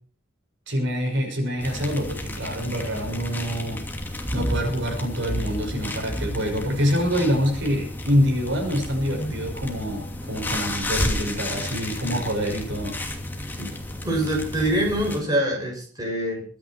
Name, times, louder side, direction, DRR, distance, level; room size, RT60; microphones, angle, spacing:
voice 1, 0.7-3.8 4.3-13.0, equal, 60° right, 2 dB, 6.1 m, -26 dB
sound 1, 1.6-15.2, left 1 dB, 10° left, 2.6 m, -31 dB
voice 2, 14.0-16.5, right 1 dB, 20° right, -1 dB, 6.4 m, -25 dB
23.5 x 10.0 x 4.5 m, 0.42 s
head